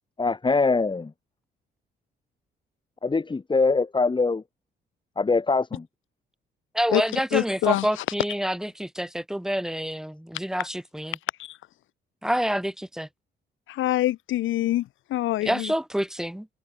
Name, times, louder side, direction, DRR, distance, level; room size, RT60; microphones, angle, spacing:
voice 1, 0.2-1.1 3.0-4.4 5.2-5.8, left 4 dB, 25° left, 2.0 m, -23 dB
voice 2, 6.7-11.2 12.2-13.1 15.4-16.5, equal, 5° right, 5.4 m, -27 dB
voice 3, 7.3-7.9 11.4-11.6 13.7-15.7, left 15 dB, 80° left, 1.1 m, -25 dB
cardioid pair, 90°, 20 cm